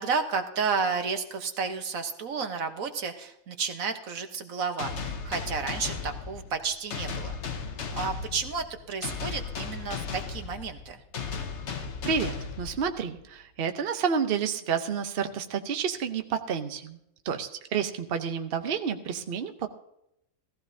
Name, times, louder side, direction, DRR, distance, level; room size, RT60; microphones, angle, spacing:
voice 1, 0.0-11.0, right 5 dB, 80° right, 6 dB, 1.5 m, -32 dB
sound 1, 4.8-13.2, left 5 dB, 60° left, 1.2 m, -36 dB
voice 2, 11.7-17.0 17.2-19.7, right 7 dB, 50° right, 7 dB, 0.9 m, -30 dB
17.0 x 15.0 x 2.7 m, 0.79 s
omnidirectional pair, 1.4 m